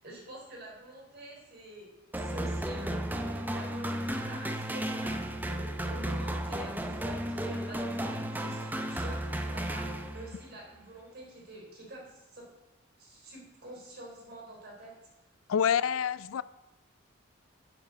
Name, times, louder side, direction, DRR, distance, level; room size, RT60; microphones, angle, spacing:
voice 1, 0.0-1.9 2.1-12.4 13.0-14.9, right 1 dB, 50° right, 3.7 m, -47 dB
sound 1, 2.1-10.5, right 1 dB, 10° right, 0.6 m, -34 dB
voice 2, 15.5-16.4, left 8 dB, 75° left, 0.4 m, -27 dB
7.5 x 6.0 x 7.6 m
head